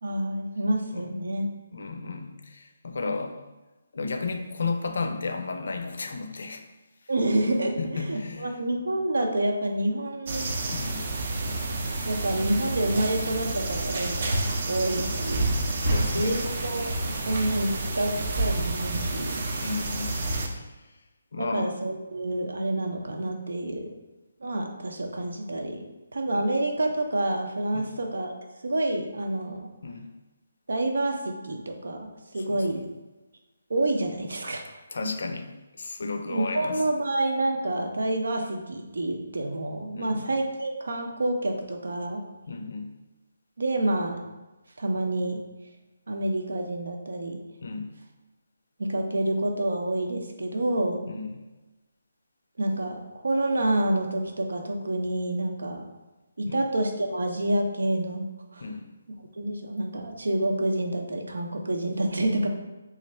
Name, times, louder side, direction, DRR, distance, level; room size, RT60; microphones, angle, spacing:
voice 1, 0.0-1.5 7.1-10.5 12.1-14.4 14.7-15.5 16.1-19.5 21.3-24.0 24.4-25.8 26.1-28.4 28.6-29.7 30.7-32.8 33.7-34.8 36.3-42.2 43.6-44.2 44.8-45.4 46.1-47.4 48.8-51.1 52.6-55.8 56.4-58.2 58.5-58.6 59.4-62.5, right 1 dB, 90° right, 3 dB, 0.6 m, -28 dB
voice 2, 1.7-3.4 3.9-6.7 7.8-8.6 10.7-11.1 15.8-16.4 19.6-20.2 20.6-20.9 21.3-21.7 27.7-27.9 29.8-30.1 32.5-32.8 34.9-35.5 35.8-36.8 39.9-40.3 42.5-42.9 47.6-47.9 51.1-51.4 56.5-56.6 58.6-58.9, left 3 dB, 65° left, 6 dB, 0.4 m, -33 dB
sound 1, 10.3-20.5, right 2 dB, 40° right, 0.5 m, -29 dB
3.2 x 2.4 x 4.3 m, 1.1 s
hypercardioid pair, 170°, 0 cm